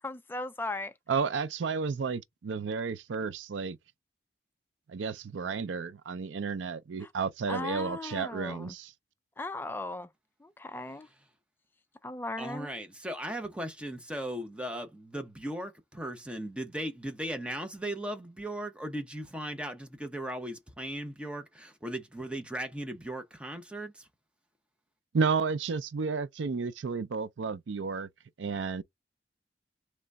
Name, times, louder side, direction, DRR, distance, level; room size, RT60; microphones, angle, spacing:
voice 1, 0.0-0.9 7.0-7.1 7.5-8.7 9.4-10.1 10.4-11.1 12.0-12.7, left 2 dB, 10° left, 0.3 m, -37 dB
voice 2, 1.1-3.8 4.9-8.9 25.1-28.1 28.4-28.8, right 5 dB, 90° right, 0.5 m, -32 dB
voice 3, 12.4-24.0, right 1 dB, 5° right, 0.8 m, -37 dB
3.9 x 3.1 x 3.4 m
head